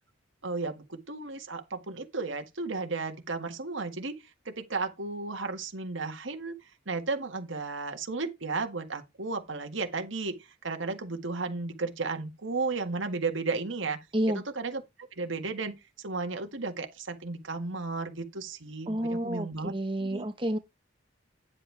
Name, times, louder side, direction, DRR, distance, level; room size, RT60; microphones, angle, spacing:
voice 1, 0.4-4.2 4.5-6.6 6.9-10.4 10.6-14.0 14.3-19.7 20.0-20.3, right 3 dB, 85° right, 1.7 m, -34 dB
voice 2, 18.9-20.6, right 1 dB, 25° right, 1.1 m, -30 dB
10.0 x 7.7 x 3.4 m
head